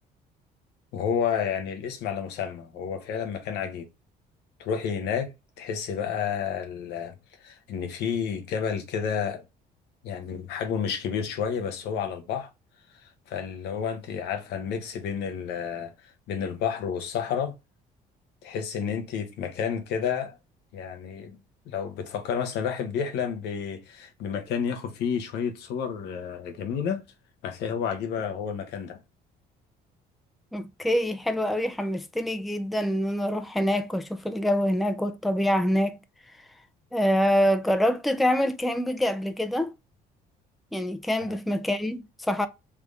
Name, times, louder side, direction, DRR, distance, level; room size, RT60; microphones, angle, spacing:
voice 1, 0.9-3.9 4.6-9.4 10.0-12.5 13.0-15.9 16.3-17.5 18.4-20.4 20.7-21.4 21.7-27.0 27.4-29.0 41.2-41.4, left 7 dB, 80° left, 0.9 m, -30 dB
voice 2, 30.5-36.0 36.9-39.7 40.7-42.5, equal, ahead, 0.3 m, -25 dB
3.4 x 3.3 x 2.4 m
cardioid pair, 110°, 17 cm